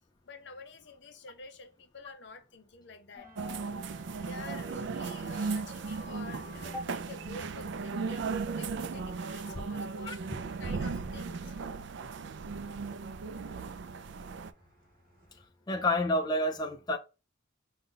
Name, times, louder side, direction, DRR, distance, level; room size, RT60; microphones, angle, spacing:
voice 1, 0.2-3.3 4.2-10.2 10.6-11.6, left 2 dB, 60° left, 0.7 m, -49 dB
Six Studies in English Folk Song I, 3.2-15.5, equal, 45° right, 1.3 m, -53 dB
sound 1, 3.4-14.5, right 4 dB, 60° right, 0.4 m, -37 dB
voice 2, 15.7-17.0, left 1 dB, 20° left, 0.3 m, -29 dB
5.1 x 2.2 x 3.8 m
head